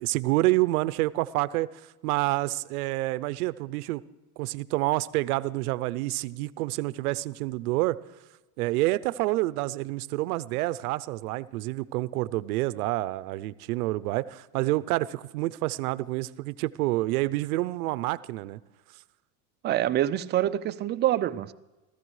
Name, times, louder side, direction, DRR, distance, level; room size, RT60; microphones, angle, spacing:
voice 1, 0.0-1.7 2.0-4.0 4.4-8.0 8.6-18.6, right 19 dB, 80° right, 0.6 m, -28 dB
voice 2, 19.6-21.5, right 12 dB, 25° right, 0.3 m, -26 dB
20.5 x 14.0 x 3.2 m
supercardioid pair, 110°, 44 cm